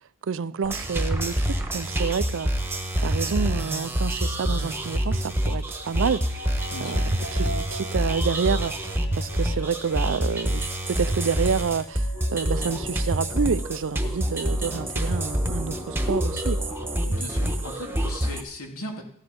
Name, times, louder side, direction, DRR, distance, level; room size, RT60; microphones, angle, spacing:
voice 1, 0.3-2.5 3.0-16.7, right 6 dB, 60° right, 0.5 m, -29 dB
sound 1, 0.6-18.4, equal, 10° right, 1.2 m, -27 dB
sound 2, 5.0-14.1 14.4-18.0, equal, 55° left, 1.5 m, -43 dB
voice 2, 6.7-7.1 17.1-19.0, left 1 dB, 75° left, 2.8 m, -38 dB
14.5 x 11.0 x 5.3 m
head